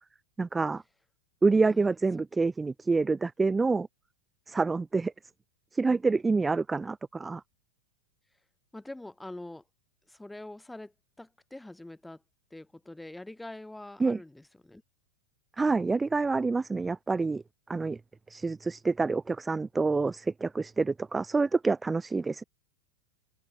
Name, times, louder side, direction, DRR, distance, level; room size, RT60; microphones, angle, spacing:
voice 1, 0.4-0.8 1.4-3.9 4.5-5.1 5.7-7.4 14.0-14.2 15.6-17.4 17.7-18.0 18.3-22.4, right 4 dB, 10° right, 0.4 m, -27 dB
voice 2, 8.7-9.6 10.1-12.2 12.5-14.8, left 1 dB, 5° left, 7.5 m, -44 dB
figure-of-eight pair, 90°, 0 cm